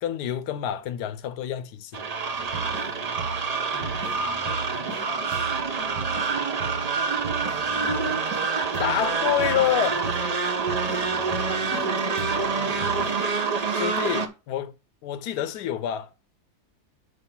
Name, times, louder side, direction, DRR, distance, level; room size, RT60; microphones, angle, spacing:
voice 1, 0.0-1.9 8.8-10.1 13.7-14.7 15.0-16.1, left 10 dB, 90° left, 1.2 m, -27 dB
sound 1, 1.9-14.3, right 5 dB, 45° right, 0.5 m, -27 dB
sound 2, 2.4-5.0 5.3-8.5 8.7-11.9 12.2-13.4, right 4 dB, 70° right, 2.4 m, -37 dB
voice 2, 3.7-4.4 4.7-6.1 7.7-8.3 11.6-13.2, left 4 dB, 35° left, 1.5 m, -41 dB
6.4 x 4.8 x 5.8 m
omnidirectional pair, 1.7 m